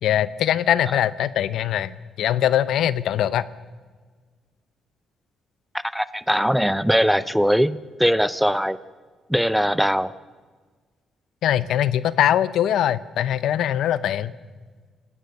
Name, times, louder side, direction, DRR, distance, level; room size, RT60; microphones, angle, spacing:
voice 1, 0.0-3.4 11.4-14.3, left 11 dB, 75° left, 17 dB, 0.7 m, -22 dB
voice 2, 5.9-8.8 9.3-10.1, equal, ahead, 17 dB, 0.7 m, -21 dB
28.0 x 17.0 x 6.6 m, 1.5 s
cardioid pair, 90°, 0 cm